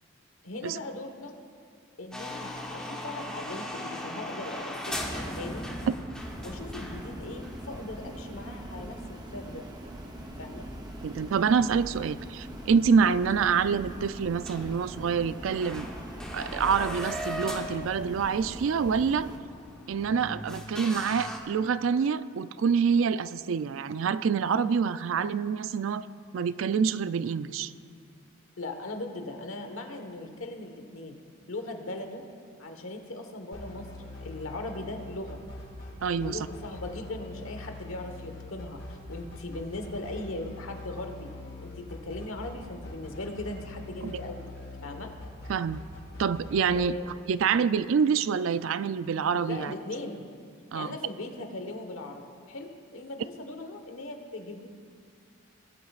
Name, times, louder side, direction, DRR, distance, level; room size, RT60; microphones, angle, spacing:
voice 1, 0.4-1.3 2.0-5.6 6.4-9.6 10.4-10.7 13.1-13.2 28.6-31.2 31.5-32.2 32.6-33.9 34.2-35.4 36.2-41.3 41.6-44.5 44.8-45.1 46.7-47.1 47.7-47.8 49.3-50.3 50.7-54.7, left 2 dB, 80° left, 5 dB, 1.2 m, -39 dB
sound 1, 2.1-10.3 10.6-10.7 11.2-11.3 12.3-12.4 12.6-12.7 13.1-13.2 13.6-13.9 14.2-14.3 14.5-21.4, left 1 dB, 5° left, 1.0 m, -39 dB
sound 2, 6.2-19.4, right 1 dB, 20° right, 0.8 m, -41 dB
voice 2, 11.0-15.9 16.3-19.3 19.9-26.0 26.3-27.7 36.0-36.4 44.0-44.1 45.5-45.8 46.2-47.0 47.3-49.7 50.7-50.9, right 6 dB, 70° right, 15 dB, 0.3 m, -26 dB
sound 3, 33.5-46.8, left 2 dB, 50° left, 3.0 m, -43 dB
20.0 x 11.5 x 2.4 m, 2.2 s
head